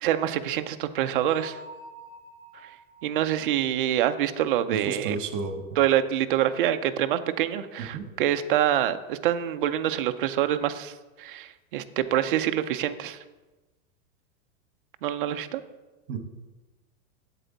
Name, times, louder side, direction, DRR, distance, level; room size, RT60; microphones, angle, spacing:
voice 1, 0.0-1.6 3.0-5.2 5.8-10.9 11.2-13.2 15.0-15.6, right 11 dB, 40° right, 9 dB, 0.4 m, -26 dB
Bell, 1.3-4.9, right 3 dB, 25° right, 2.6 m, -48 dB
voice 2, 4.7-5.6 7.9-8.0 16.1-16.2, right 5 dB, 55° right, 7 dB, 1.3 m, -32 dB
8.0 x 7.9 x 3.9 m, 1.2 s
supercardioid pair, 165°, 42 cm